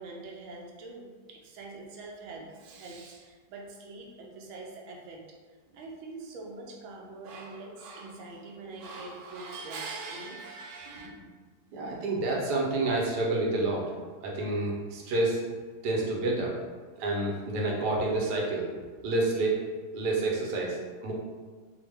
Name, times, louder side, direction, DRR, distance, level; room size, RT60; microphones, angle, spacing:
voice 1, 0.0-5.3 5.7-11.1, right 3 dB, 70° right, -1 dB, 0.8 m, -43 dB
voice 2, 11.7-13.9 14.2-15.4 15.8-16.6 17.0-18.7 19.0-19.6 19.9-21.1, right 2 dB, 85° right, -2 dB, 1.2 m, -28 dB
2.9 x 2.1 x 3.2 m, 1.5 s
omnidirectional pair, 1.7 m